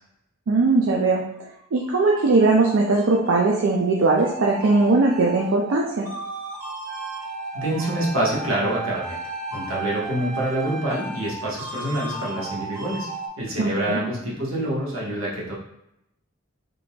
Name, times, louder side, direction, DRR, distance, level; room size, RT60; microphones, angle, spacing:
voice 1, 0.5-1.2 1.7-6.1 13.6-14.0, right 3 dB, 70° right, -1 dB, 0.5 m, -19 dB
sound 1, 1.5-13.3, right 3 dB, 15° right, 0.7 m, -35 dB
Wind instrument woodwind instrument, 6.9-11.3, left 2 dB, 45° right, 1.0 m, -39 dB
voice 2, 7.5-9.2 9.5-13.1 13.4-15.5, right 1 dB, 85° right, -5 dB, 1.3 m, -26 dB
3.9 x 3.5 x 2.3 m, 0.81 s
head